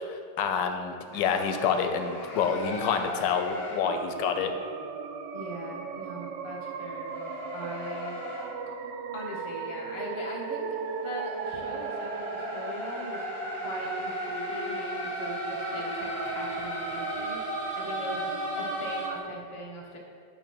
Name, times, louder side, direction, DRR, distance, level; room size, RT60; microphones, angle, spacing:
voice 1, 0.1-4.5, left 6 dB, 85° left, 6 dB, 1.3 m, -28 dB
sound 1, 1.1-3.9 7.1-8.5 10.2-19.1, left 2 dB, 40° left, 1.1 m, -37 dB
sound 2, 3.8-19.2, right 5 dB, 80° right, 1.2 m, -37 dB
voice 2, 5.3-8.2 9.1-10.7 11.0-13.2 13.6-20.0, equal, 20° left, -2 dB, 0.8 m, -40 dB
8.9 x 3.1 x 6.0 m, 2.3 s
omnidirectional pair, 1.9 m